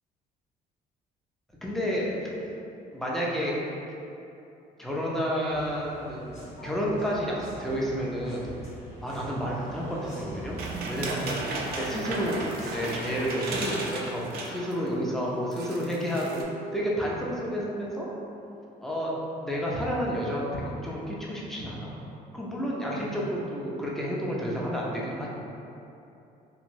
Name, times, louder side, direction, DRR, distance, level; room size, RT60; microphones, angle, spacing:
voice 1, 1.6-2.5 2.9-3.6 4.8-6.3 6.6-8.5 9.0-10.6 10.9-11.4 11.8-12.5 12.7-18.1 18.8-19.1 19.4-22.0 22.3-25.3, equal, ahead, -5 dB, 0.5 m, -30 dB
sound 1, 5.5-13.3, right 2 dB, 40° left, 0.8 m, -43 dB
sound 2, 10.6-14.8 15.2-15.3 15.5-16.4, right 2 dB, 65° right, 0.4 m, -35 dB
2.9 x 2.6 x 2.6 m, 2.8 s
cardioid pair, 110°, 17 cm